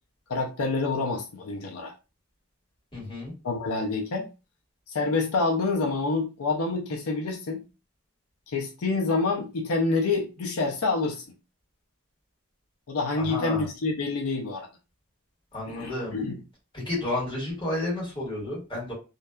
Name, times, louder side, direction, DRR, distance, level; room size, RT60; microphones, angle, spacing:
voice 1, 0.3-1.9 3.4-4.3 4.9-7.6 8.5-11.2 12.9-14.7 15.7-16.4, left 3 dB, 80° left, 0.5 m, -27 dB
voice 2, 2.9-3.3 13.3-13.6 15.5-16.2 16.9-18.9, left 1 dB, 20° left, 1.4 m, -31 dB
2.6 x 2.1 x 2.2 m
head